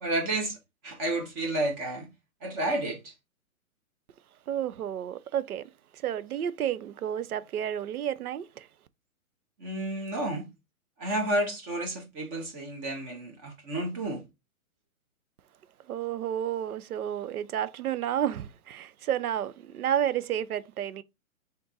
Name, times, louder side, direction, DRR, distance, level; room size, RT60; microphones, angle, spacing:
voice 1, 0.0-0.6 0.8-2.1 2.4-3.1 9.6-10.5 11.0-14.2, right 1 dB, 15° right, 0.4 m, -31 dB
voice 2, 4.5-5.6 6.0-8.7 15.9-21.0, right 10 dB, 90° right, 0.6 m, -31 dB
3.5 x 2.6 x 4.0 m
hypercardioid pair, 135°, 43 cm